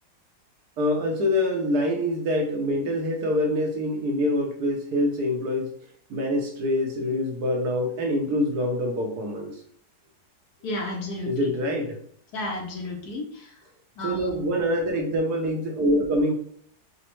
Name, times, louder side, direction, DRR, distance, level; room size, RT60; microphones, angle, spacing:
voice 1, 0.8-5.7 6.1-9.6 11.3-12.0 14.0-16.3, left 1 dB, 70° right, 2 dB, 1.1 m, -25 dB
voice 2, 10.6-11.5 12.3-13.6 14.0-14.3, left 1 dB, 65° left, 2 dB, 1.1 m, -32 dB
5.0 x 2.1 x 3.0 m, 0.62 s
omnidirectional pair, 2.0 m